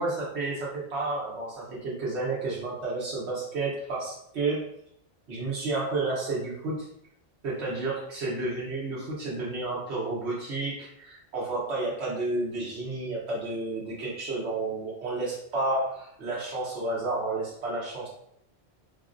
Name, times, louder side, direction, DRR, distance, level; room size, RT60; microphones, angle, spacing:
voice 1, 0.0-4.7 5.3-6.9 7.4-18.1, right 2 dB, 85° right, -6 dB, 1.2 m, -31 dB
4.1 x 2.0 x 2.5 m, 0.72 s
omnidirectional pair, 1.1 m